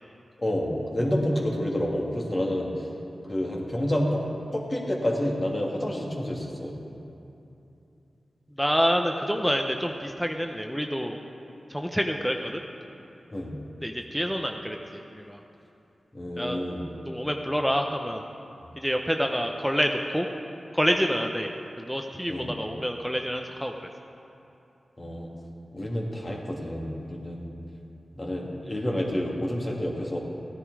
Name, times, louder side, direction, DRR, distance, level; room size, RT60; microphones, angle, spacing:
voice 1, 0.4-2.7 3.3-4.2 4.5-6.7 13.3-13.5 16.1-16.8 22.3-22.5 25.0-25.3 25.7-27.5 28.2-30.2, left 1 dB, 35° left, -1 dB, 2.3 m, -29 dB
voice 2, 8.6-11.2 11.7-12.6 13.8-15.4 16.4-16.6 17.1-18.2 18.8-20.3 20.7-21.5 21.8-23.7, equal, ahead, 3 dB, 0.8 m, -27 dB
15.5 x 9.7 x 4.8 m, 2.8 s
cardioid pair, 45°, 0 cm